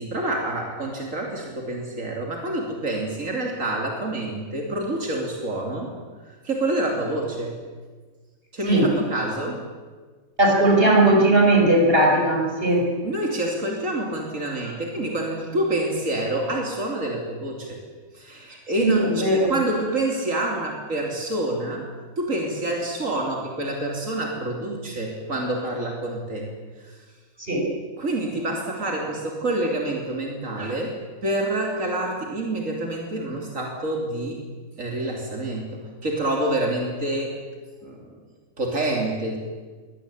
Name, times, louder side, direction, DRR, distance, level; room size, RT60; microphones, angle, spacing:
voice 1, 0.0-5.9 6.3-7.6 8.5-9.6 13.0-17.8 18.1-21.8 22.2-26.5 26.8-27.0 28.0-34.4 34.8-37.4 37.8-38.1 38.6-39.4, right 1 dB, 85° right, 1 dB, 3.4 m, -27 dB
voice 2, 10.4-12.9 18.8-19.5 27.4-27.7, right 1 dB, 45° right, 0 dB, 5.3 m, -18 dB
23.5 x 18.0 x 8.7 m, 1.4 s
omnidirectional pair, 1.3 m